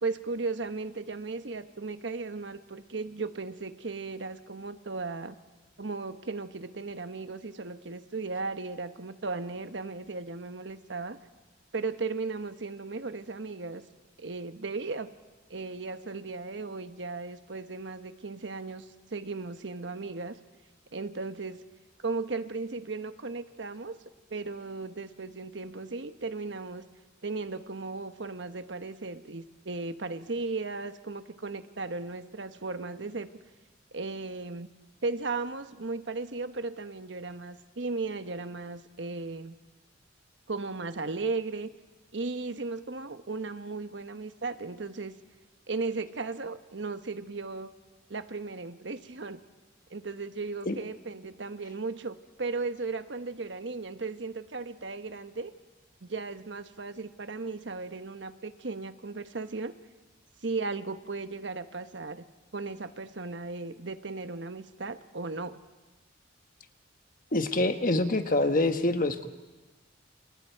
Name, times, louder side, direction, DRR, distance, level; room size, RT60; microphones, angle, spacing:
voice 1, 0.0-5.3 5.8-11.2 11.7-13.8 14.2-15.1 15.5-20.4 20.9-21.6 22.0-24.0 24.3-26.9 27.2-33.3 33.9-34.7 35.0-39.6 40.5-41.7 42.1-45.1 45.7-47.7 48.1-49.4 49.9-55.5 56.0-59.8 60.4-62.3 62.5-65.6, right 3 dB, 70° right, 10 dB, 1.1 m, -36 dB
voice 2, 67.3-69.3, left 2 dB, 45° left, 8 dB, 1.3 m, -25 dB
29.0 x 28.5 x 4.6 m, 1.2 s
head